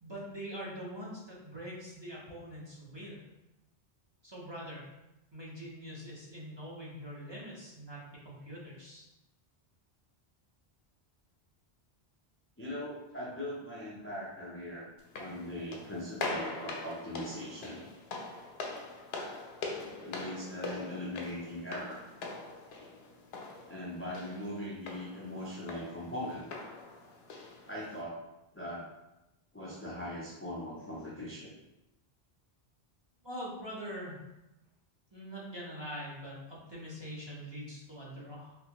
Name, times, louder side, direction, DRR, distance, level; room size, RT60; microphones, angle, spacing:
voice 1, 0.0-3.2 4.2-4.9 5.3-8.0 8.2-9.1 33.2-34.3 35.1-38.6, equal, 30° right, -6 dB, 0.7 m, -43 dB
voice 2, 12.6-14.9 15.1-17.8 20.0-22.0 23.7-26.5 27.6-28.2 28.5-28.9 29.5-31.5, left 1 dB, 20° left, -7 dB, 0.4 m, -40 dB
sound 1, 15.0-28.0, left 3 dB, 75° left, 0.8 m, -43 dB
3.3 x 2.5 x 2.9 m, 0.96 s
omnidirectional pair, 1.1 m